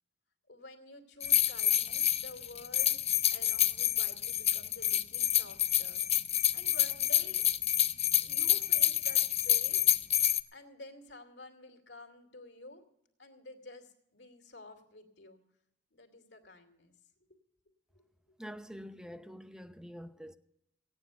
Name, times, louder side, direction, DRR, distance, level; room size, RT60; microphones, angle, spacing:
voice 1, 0.5-3.0 3.3-6.0 6.3-7.5 8.2-9.8 10.5-12.8 13.2-15.4 15.9-16.9 17.9-18.1, left 2 dB, 65° left, 2.5 m, -51 dB
sound 1, 1.2-10.4, left 11 dB, 35° left, 0.6 m, -28 dB
voice 2, 18.4-20.4, equal, 5° right, 0.7 m, -46 dB
17.0 x 9.7 x 6.8 m
head